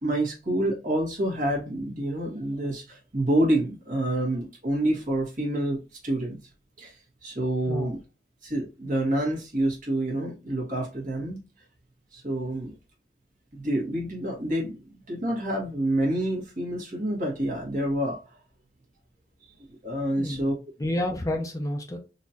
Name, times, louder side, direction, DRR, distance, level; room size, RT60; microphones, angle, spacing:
voice 1, 0.0-6.4 6.8-8.0 8.4-11.4 12.1-12.7 13.5-18.2 19.8-20.5, right 1 dB, 50° right, 1.6 m, -28 dB
voice 2, 20.2-20.5 20.8-22.0, left 1 dB, 20° left, 0.6 m, -30 dB
4.2 x 2.9 x 2.7 m
head